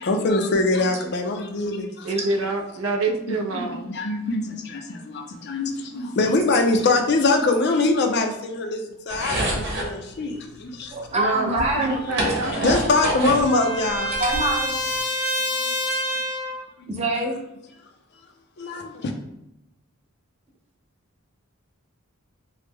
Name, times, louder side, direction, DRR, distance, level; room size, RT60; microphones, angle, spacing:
voice 1, 0.0-2.1 3.5-10.9 11.8-14.2 15.6-15.7 16.8-16.9 18.6-19.1, left 2 dB, 50° left, 4 dB, 0.4 m, -23 dB
voice 2, 2.0-3.9 11.1-12.7, right 2 dB, 75° right, 4 dB, 0.4 m, -26 dB
sound 1, 9.1-9.9 11.1-11.2 11.6-13.5 13.8-14.9, right 1 dB, 55° right, 0.9 m, -27 dB
voice 3, 10.9-12.0 14.2-14.7 16.9-17.4, right 2 dB, 30° right, -1 dB, 0.6 m, -25 dB
Trumpet, 12.2-16.6, equal, 70° left, 0.9 m, -28 dB
3.1 x 2.0 x 3.4 m, 0.87 s
head